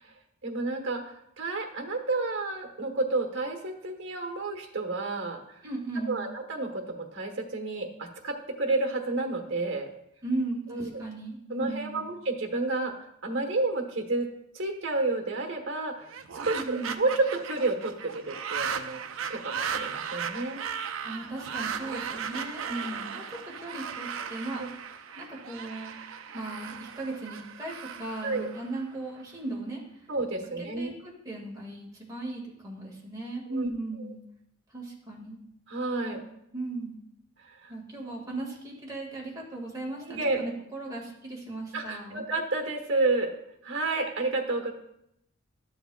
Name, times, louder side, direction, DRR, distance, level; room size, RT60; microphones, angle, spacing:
voice 1, 0.4-5.6 6.1-9.9 10.7-10.9 11.5-12.9 13.2-14.3 14.5-15.9 16.4-19.0 19.3-20.6 22.7-23.2 24.6-24.7 28.2-28.5 30.1-30.9 33.5-33.7 34.0-34.1 35.7-36.2 37.5-37.7 40.1-40.4 41.7-43.3 43.6-44.7, right 2 dB, 60° right, 4 dB, 1.2 m, -30 dB
voice 2, 5.6-6.3 10.2-12.1 16.4-17.0 21.0-22.6 23.1-24.7 25.2-26.0 26.3-30.1 30.6-34.2 34.7-35.4 36.0-36.1 36.5-37.0 37.7-42.3, right 2 dB, 20° right, -3 dB, 1.9 m, -37 dB
sound 1, 16.0-29.2, right 7 dB, 80° right, 0.5 m, -37 dB
12.5 x 7.0 x 2.3 m, 0.77 s
head